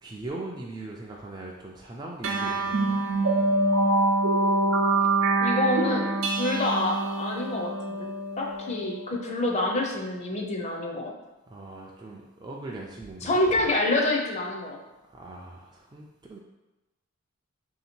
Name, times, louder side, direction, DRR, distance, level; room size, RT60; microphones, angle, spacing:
voice 1, 0.0-3.0 11.5-13.4 15.1-16.4, right 2 dB, 20° right, -2 dB, 0.3 m, -40 dB
sound 1, 2.2-9.1, right 2 dB, 85° right, 0.6 m, -25 dB
voice 2, 5.4-8.1 8.4-11.1 13.2-14.8, left 2 dB, 35° left, 0 dB, 0.5 m, -27 dB
3.1 x 2.8 x 4.3 m, 1.0 s
head